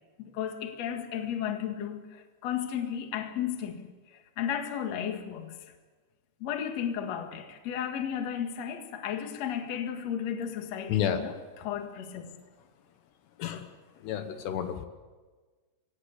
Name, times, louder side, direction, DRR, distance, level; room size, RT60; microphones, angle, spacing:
voice 1, 0.2-5.6 6.4-11.3 11.6-12.3, left 9 dB, 50° left, 5 dB, 2.2 m, -34 dB
voice 2, 10.9-11.2 13.4-13.7 14.0-14.8, left 10 dB, 75° left, 8 dB, 3.0 m, -30 dB
26.0 x 17.5 x 8.3 m, 1.4 s
omnidirectional pair, 5.2 m